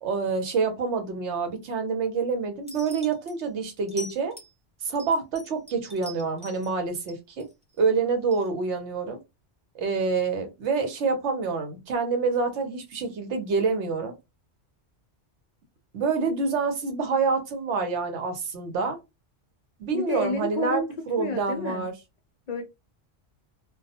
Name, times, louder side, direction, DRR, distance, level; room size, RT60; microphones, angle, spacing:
voice 1, 0.0-4.3 4.8-7.5 7.8-9.2 9.7-14.1 15.9-19.0 19.8-20.8 21.1-21.9, right 4 dB, 70° right, 1.0 m, -27 dB
sound 1, 2.7-3.3 3.9-4.5 4.9-6.7 7.1-7.8 8.3-8.5, equal, 10° right, 0.5 m, -43 dB
voice 2, 19.9-20.9 21.2-21.8 22.5-22.6, left 2 dB, 55° left, 0.4 m, -29 dB
2.3 x 2.2 x 2.7 m
omnidirectional pair, 1.2 m